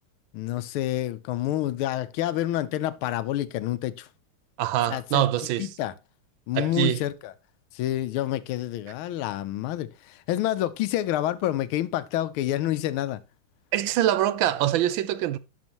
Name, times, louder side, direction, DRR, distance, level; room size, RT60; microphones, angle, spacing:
voice 1, 0.3-4.1 4.9-5.3 5.6-5.9 6.5-7.3 7.7-13.2, left 13 dB, 85° left, 1.5 m, -28 dB
voice 2, 4.6-5.7 6.5-7.0 13.7-15.4, right 12 dB, 75° right, 1.3 m, -24 dB
10.5 x 6.3 x 2.9 m
omnidirectional pair, 2.3 m